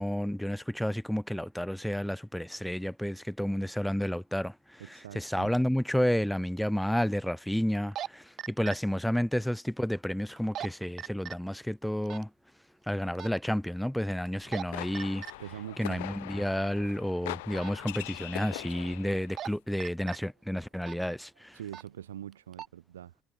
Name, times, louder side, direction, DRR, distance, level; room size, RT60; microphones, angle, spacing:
voice 1, 0.0-4.8 5.1-12.3 12.9-15.2 15.8-21.6, equal, ahead, 0.4 m, -31 dB
voice 2, 4.8-5.5 15.4-16.2 16.9-17.0 20.2-20.3 20.6-20.7 20.9-21.2 21.5-23.2, right 11 dB, 75° right, 0.8 m, -44 dB
sound 1, 5.7-5.8 7.8-8.1 8.4-8.8 10.4-10.7 11.0-11.4 12.1-12.2 13.2-13.4 14.3-14.6 15.0-15.3 17.6-17.8 19.1-19.5 19.8-20.2 20.8-21.0 21.7-21.9 22.3-22.7, right 10 dB, 50° right, 0.6 m, -38 dB
sound 2, 14.3-19.4, left 22 dB, 70° left, 0.4 m, -42 dB
figure-of-eight pair, 55°, 0 cm